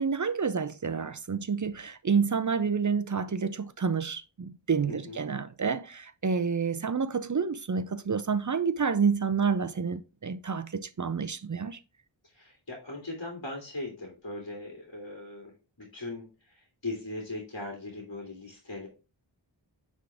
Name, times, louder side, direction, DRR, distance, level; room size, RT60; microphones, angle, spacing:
voice 1, 0.0-11.8, right 5 dB, 40° right, 0.5 m, -29 dB
voice 2, 4.9-5.2 12.3-18.9, left 2 dB, 50° left, 2.3 m, -39 dB
9.6 x 3.7 x 3.4 m
wide cardioid pair, 65°, 47 cm